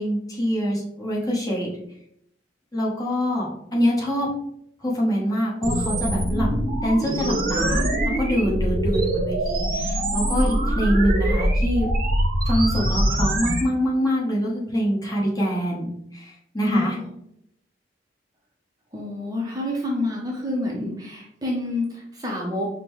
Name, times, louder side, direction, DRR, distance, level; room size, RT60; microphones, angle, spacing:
voice 1, 0.0-1.7 2.7-4.3 4.8-6.5 6.8-11.9 12.4-17.0, equal, 20° left, -5 dB, 1.1 m, -25 dB
sound 1, 5.6-13.6, right 1 dB, 55° right, 0.8 m, -23 dB
voice 2, 16.7-17.1 18.9-22.7, left 2 dB, 20° right, -2 dB, 0.6 m, -28 dB
5.2 x 2.2 x 3.1 m, 0.75 s
head